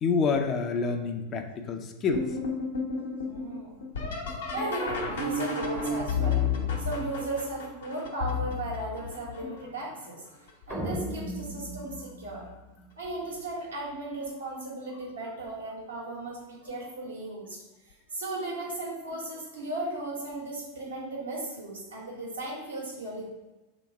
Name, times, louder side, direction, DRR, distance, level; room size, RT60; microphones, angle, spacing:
voice 1, 0.0-2.3 11.5-11.6, left 5 dB, 35° left, 5 dB, 0.5 m, -28 dB
sound 1, 2.1-9.8 10.5-11.0 11.5-12.1 13.4-13.5 14.2-14.5 16.7-16.8 19.1-19.2, left 4 dB, 75° left, 0.9 m, -32 dB
voice 2, 3.2-3.8 4.5-6.4 6.8-10.2 10.7-12.4 13.0-17.6 18.1-23.3, right 2 dB, 85° right, -5 dB, 1.4 m, -36 dB
sound 2, 10.7-13.2, right 1 dB, 10° right, 0.7 m, -37 dB
3.4 x 3.0 x 4.6 m, 1.1 s
figure-of-eight pair, 90°, 0 cm